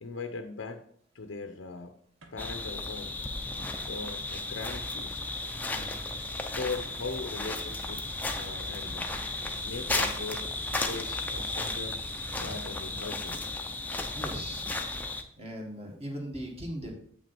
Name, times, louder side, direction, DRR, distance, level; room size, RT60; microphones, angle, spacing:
voice 1, 0.0-0.8 1.1-1.9 2.3-3.2 3.8-5.2 6.4-8.0 8.4-9.1 9.6-10.5 10.8-12.0 12.4-13.4, left 3 dB, 75° left, 6 dB, 0.7 m, -39 dB
sound 1, 2.2-14.9, right 1 dB, 90° right, 1.3 m, -49 dB
sound 2, 2.4-15.2, left 2 dB, 10° left, 0.6 m, -34 dB
voice 2, 5.7-6.3 12.4-12.6 14.1-14.8 15.4-16.9, equal, 30° right, 0 dB, 1.9 m, -39 dB
8.0 x 6.1 x 4.4 m, 0.62 s
head